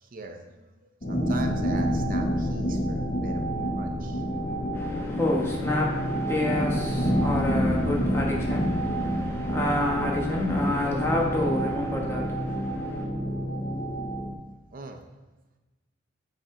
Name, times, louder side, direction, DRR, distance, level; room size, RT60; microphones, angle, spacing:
voice 1, 0.0-3.4 3.8-4.2 14.7-15.0, right 2 dB, 45° right, 0.5 m, -41 dB
sound 1, 1.0-14.3, equal, 40° left, 0.8 m, -28 dB
voice 2, 4.7-13.1, left 1 dB, 15° left, 1.1 m, -28 dB
7.3 x 3.4 x 4.8 m
head